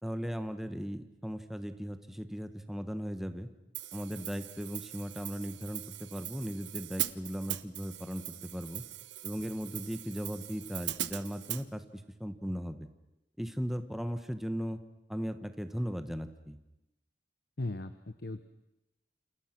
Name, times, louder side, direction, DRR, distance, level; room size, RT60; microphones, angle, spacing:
voice 1, 0.0-3.5 3.9-8.8 9.2-12.9 13.4-14.8 15.1-16.6, equal, ahead, 8 dB, 1.4 m, -37 dB
Hi-hat, 3.7-11.6, right 14 dB, 85° right, 1.1 m, -40 dB
voice 2, 17.6-18.4, left 2 dB, 65° left, 11 dB, 1.0 m, -37 dB
28.5 x 28.5 x 6.2 m, 0.92 s
head